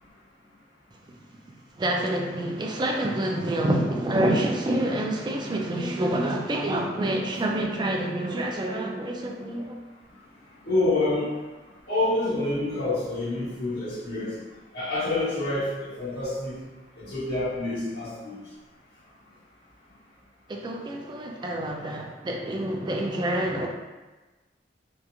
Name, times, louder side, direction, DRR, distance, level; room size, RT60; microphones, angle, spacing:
voice 1, 1.8-9.8 20.5-23.7, right 1 dB, 25° right, 0 dB, 0.3 m, -27 dB
voice 2, 10.6-11.3 11.9-14.3 14.7-16.6 17.0-18.4, left 2 dB, 65° left, -11 dB, 1.4 m, -27 dB
2.8 x 2.3 x 2.4 m, 1.2 s
head